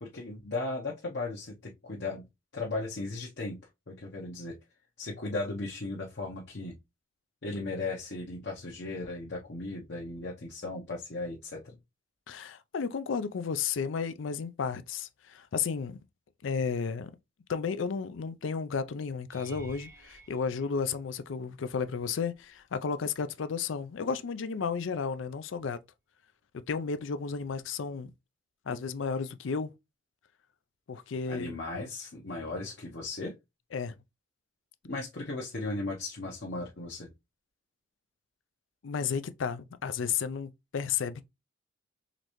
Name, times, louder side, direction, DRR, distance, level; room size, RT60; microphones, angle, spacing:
voice 1, 0.0-2.2 2.5-3.6 3.9-4.6 5.0-6.7 7.4-11.8 31.3-33.3 34.8-37.1, left 2 dB, 60° left, 0.9 m, -36 dB
voice 2, 12.3-16.0 16.4-17.1 17.5-25.8 26.5-28.1 28.7-29.7 30.9-31.6 33.7-33.9 38.8-41.2, left 6 dB, 80° left, 0.4 m, -33 dB
sound 1, 19.3-21.6 22.3-22.7 23.1-23.2 27.6-27.7, right 3 dB, 15° right, 0.7 m, -51 dB
3.9 x 3.2 x 3.0 m
head